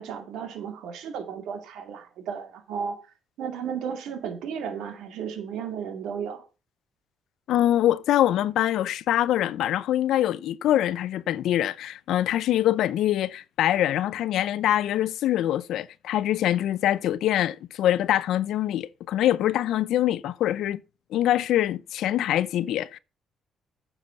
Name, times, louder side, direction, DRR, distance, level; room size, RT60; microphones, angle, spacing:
voice 1, 0.0-3.0 3.4-6.4, right 7 dB, 85° right, 2.2 m, -34 dB
voice 2, 7.5-20.8 21.1-23.0, left 12 dB, 80° left, 0.5 m, -24 dB
9.6 x 6.8 x 5.7 m
cardioid pair, 90°, 0 cm